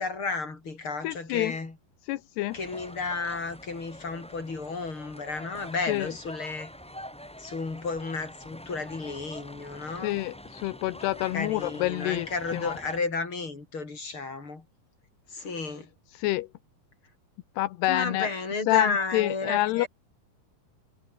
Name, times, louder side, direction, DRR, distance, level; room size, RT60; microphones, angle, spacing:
voice 1, 0.0-1.8 2.5-6.7 7.4-10.2 11.3-14.6 15.3-15.9 17.9-19.9, left 4 dB, 30° left, 6.2 m, -32 dB
voice 2, 1.0-1.6 2.1-2.6 5.9-6.1 10.0-12.8 16.1-16.5 17.6-18.3 18.7-19.9, left 17 dB, 85° left, 3.0 m, -27 dB
sound 1, 2.5-13.0, equal, ahead, 3.9 m, -45 dB
omnidirectional pair, 4.7 m